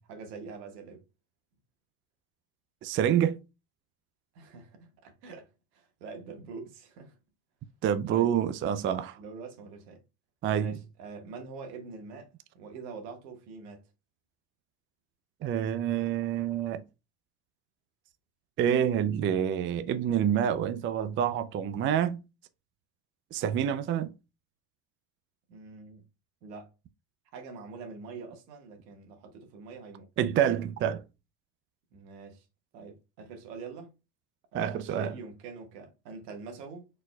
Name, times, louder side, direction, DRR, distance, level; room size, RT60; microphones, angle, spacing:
voice 1, 0.1-1.0 4.3-7.2 8.1-8.3 9.2-10.0 10.5-13.8 25.5-26.1 26.4-26.7 27.3-30.1 31.9-32.4 32.7-33.9 34.5-36.9, right 4 dB, 80° right, 1.6 m, -44 dB
voice 2, 2.8-3.4 7.8-9.2 10.4-10.8 15.4-16.8 18.6-22.2 23.3-24.1 30.2-31.0 34.5-35.1, right 9 dB, 25° right, 0.4 m, -27 dB
4.4 x 4.2 x 2.2 m
supercardioid pair, 90°, 49 cm